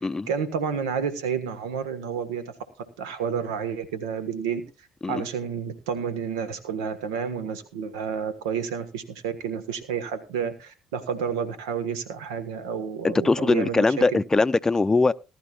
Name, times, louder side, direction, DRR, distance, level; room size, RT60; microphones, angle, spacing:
voice 1, 0.3-2.4 3.0-4.6 5.1-14.2, right 7 dB, 85° right, 1.4 m, -30 dB
voice 2, 13.0-15.1, left 3 dB, 20° left, 0.5 m, -21 dB
19.5 x 11.5 x 2.4 m
hypercardioid pair, 60°, 3 cm